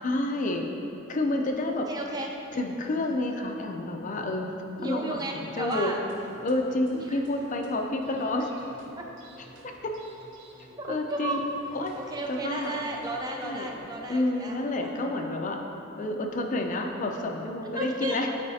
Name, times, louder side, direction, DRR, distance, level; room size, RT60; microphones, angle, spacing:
voice 1, 0.0-0.7 1.1-1.9 2.5-5.9 6.4-8.5 9.8-9.9 10.9-11.4 11.7-11.9 12.3-12.8 13.4-13.7 14.1-15.6 16.0-18.3, left 2 dB, 40° left, 3 dB, 0.4 m, -29 dB
voice 2, 1.9-2.3 4.8-6.0 6.9-7.2 9.0-9.1 10.8-11.4 11.9-14.9 17.7-18.2, right 2 dB, 20° right, 1 dB, 0.4 m, -34 dB
sound 1, 5.7-14.0, right 1 dB, 65° right, 0.7 m, -51 dB
8.3 x 4.7 x 2.7 m, 2.9 s
head